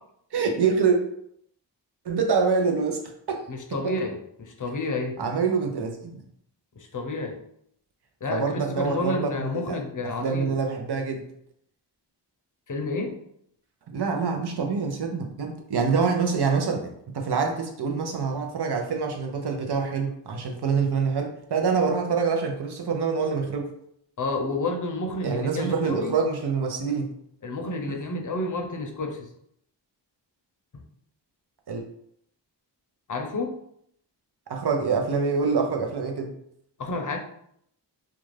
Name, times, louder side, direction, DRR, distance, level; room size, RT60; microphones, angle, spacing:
voice 1, 0.3-1.0 2.1-3.0 3.3-3.5 3.8-3.9 5.2-6.2 8.3-9.8 10.0-11.3 13.9-23.7 25.2-27.1 27.9-28.0 31.7-31.8 34.5-36.3, right 5 dB, 65° right, 3 dB, 0.6 m, -26 dB
voice 2, 3.5-5.2 6.8-7.3 8.2-10.5 12.7-13.1 24.2-26.1 27.4-29.3 33.1-33.5 36.8-37.2, left 2 dB, 45° left, 2 dB, 0.6 m, -30 dB
2.5 x 2.2 x 3.1 m, 0.71 s
wide cardioid pair, 65°, 44 cm